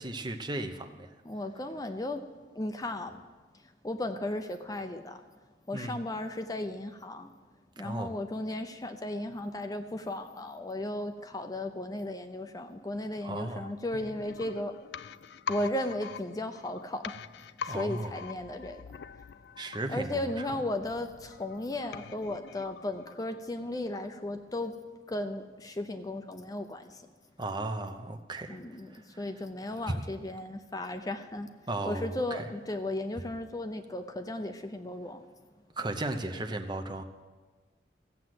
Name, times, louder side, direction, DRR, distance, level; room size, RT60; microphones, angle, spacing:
voice 1, 0.0-1.1 5.7-6.0 7.8-8.1 13.2-13.7 17.7-18.2 19.6-20.6 27.4-28.6 28.9-29.2 29.9-30.0 31.7-32.4 35.8-37.1, right 2 dB, 25° right, 6 dB, 0.8 m, -35 dB
voice 2, 1.3-2.2 2.5-3.2 3.8-5.2 5.7-7.3 7.8-14.7 15.5-17.2 17.6-18.8 19.9-24.7 25.1-27.0 28.5-28.9 29.2-31.5 31.8-35.2, left 1 dB, 20° left, 7 dB, 0.6 m, -35 dB
sound 1, 13.9-23.6 23.9-24.0, left 7 dB, 65° left, 0.3 m, -44 dB
15.0 x 7.7 x 7.8 m, 1.3 s
head